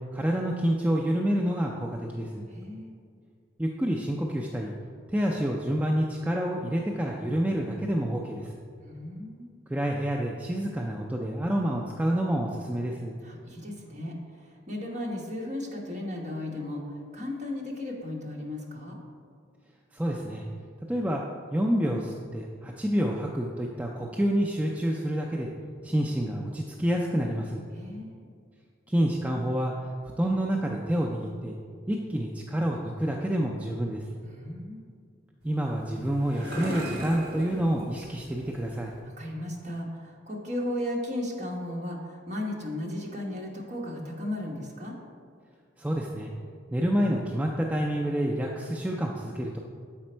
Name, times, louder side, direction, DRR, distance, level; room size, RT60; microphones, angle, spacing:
voice 1, 0.1-2.5 3.6-4.7 5.1-8.5 9.7-13.1 19.9-20.4 20.9-21.2 21.5-25.5 25.8-27.6 28.9-29.7 30.2-31.5 31.9-34.1 35.4-38.9 45.8-46.3 46.7-49.6, equal, 10° right, -1 dB, 0.3 m, -28 dB
voice 2, 2.5-2.9 8.8-9.5 13.2-19.0 27.7-28.2 34.2-34.8 39.0-44.9, left 1 dB, 40° right, -2 dB, 1.1 m, -35 dB
sound 1, 35.4-39.0, equal, 55° right, 1.8 m, -39 dB
7.3 x 5.1 x 4.4 m, 2.1 s
head